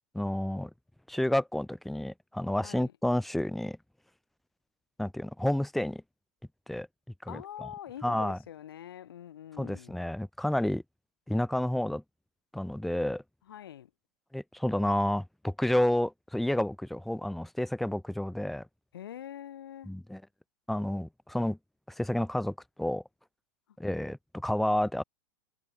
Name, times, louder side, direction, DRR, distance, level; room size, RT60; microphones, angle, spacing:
voice 1, 0.1-0.7 1.1-3.8 5.0-6.0 6.7-6.9 7.2-7.7 8.0-8.4 9.6-10.8 11.3-12.0 12.5-13.2 14.3-18.7 19.9-20.2 20.7-21.6 22.0-23.0 23.8-25.0, left 1 dB, ahead, 0.4 m, -30 dB
voice 2, 2.6-2.9 7.3-10.0 13.5-13.9 18.9-19.9, left 11 dB, 85° left, 1.6 m, -44 dB
supercardioid pair, 145°, 12 cm